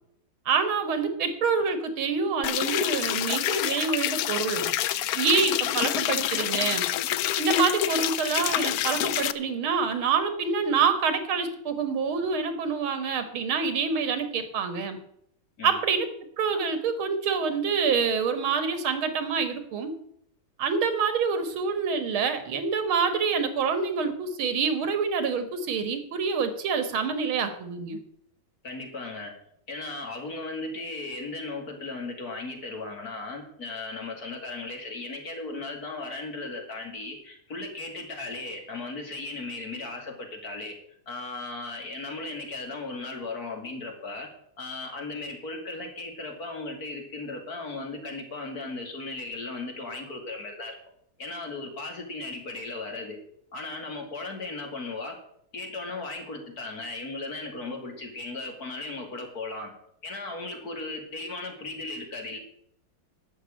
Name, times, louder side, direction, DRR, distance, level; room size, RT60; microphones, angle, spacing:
voice 1, 0.5-4.7 5.2-6.9 7.4-15.0 15.6-16.1 16.4-19.9 20.6-28.0, right 5 dB, 85° right, 9 dB, 2.3 m, -26 dB
sound 1, 2.4-9.3, left 12 dB, 90° left, 0.8 m, -27 dB
voice 2, 28.6-29.3 29.7-40.8 41.1-44.3 44.6-50.7 51.2-53.2 53.5-55.2 55.5-59.7 60.0-62.4, left 3 dB, 45° left, 2 dB, 2.8 m, -36 dB
12.0 x 6.5 x 8.8 m, 0.71 s
omnidirectional pair, 2.2 m